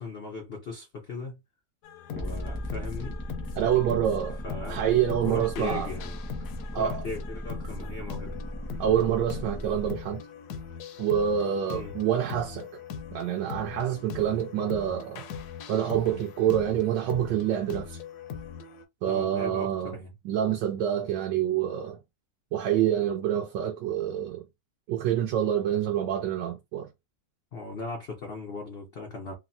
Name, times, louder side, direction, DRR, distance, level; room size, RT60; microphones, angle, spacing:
voice 1, 0.0-1.4 2.1-3.2 4.4-4.8 5.2-6.2 6.7-8.4 11.7-11.9 19.1-20.1 27.5-29.3, left 3 dB, 90° left, 0.5 m, -38 dB
sound 1, 1.8-18.8, left 7 dB, 70° left, 1.0 m, -41 dB
sound 2, 2.2-9.9, equal, 10° left, 0.5 m, -37 dB
voice 2, 3.6-4.4 4.7-5.9 6.7-7.0 8.8-10.2 11.0-12.7 13.1-15.2 15.7-18.0 19.0-20.0 20.2-22.0 22.5-24.4 24.9-26.9, right 10 dB, 80° right, 1.2 m, -27 dB
3.4 x 2.0 x 2.5 m
omnidirectional pair, 1.9 m